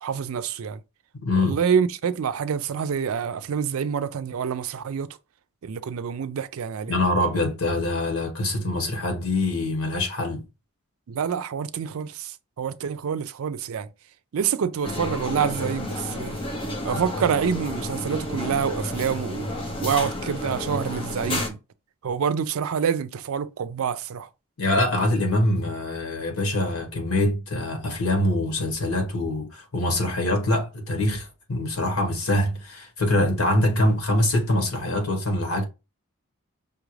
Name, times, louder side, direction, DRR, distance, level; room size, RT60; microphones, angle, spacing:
voice 1, 0.0-0.8 1.4-5.2 5.6-7.0 11.1-13.9 14.3-16.4 16.8-19.5 19.8-21.6 22.0-24.3, right 7 dB, 80° right, 0.4 m, -27 dB
voice 2, 1.2-1.6 6.9-10.4 24.6-35.6, left 1 dB, 90° left, 1.4 m, -24 dB
sound 1, 14.8-21.5, left 1 dB, 25° left, 0.7 m, -31 dB
5.5 x 2.4 x 3.1 m
head